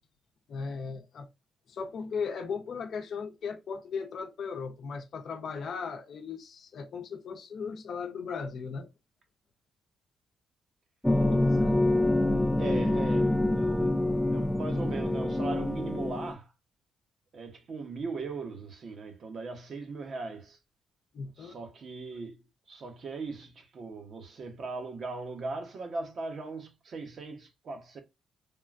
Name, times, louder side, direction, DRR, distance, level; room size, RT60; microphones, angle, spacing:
voice 1, 0.5-1.3 1.7-8.9 11.1-11.9 21.1-21.6, left 5 dB, 60° left, 0.7 m, -37 dB
sound 1, 11.0-16.3, left 1 dB, 5° left, 0.4 m, -26 dB
voice 2, 12.6-13.9 14.3-16.5 17.3-20.6 21.4-28.0, right 3 dB, 50° right, 0.9 m, -39 dB
3.6 x 2.2 x 2.4 m
cardioid pair, 90°, 0 cm